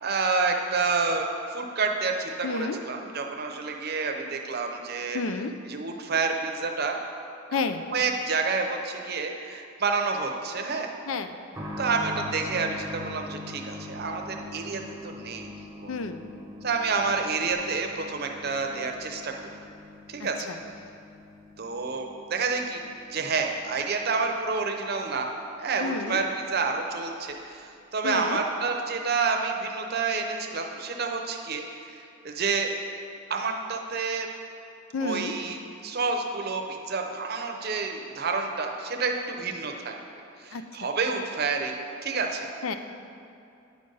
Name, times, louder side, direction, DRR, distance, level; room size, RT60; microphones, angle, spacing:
voice 1, 0.0-5.2 5.7-7.0 7.5-7.6 7.9-10.9 11.8-15.5 15.8-15.9 16.6-19.5 20.1-20.5 21.6-22.8 23.1-25.3 25.6-32.7 33.3-34.3 35.0-35.6 35.8-39.9 40.4-41.7 42.0-42.5, right 4 dB, 50° right, 3 dB, 0.7 m, -29 dB
voice 2, 2.4-2.8 5.1-5.5 7.5-7.8 11.1-11.4 15.9-16.2 20.2-20.6 25.8-26.2 28.0-28.4 34.9-35.3 40.5-40.6 42.6-42.7, left 4 dB, 85° left, 8 dB, 0.5 m, -30 dB
sound 1, 11.5-26.0 26.2-26.3 27.3-27.4, left 2 dB, 15° right, 0.7 m, -43 dB
9.8 x 5.3 x 3.9 m, 2.6 s
head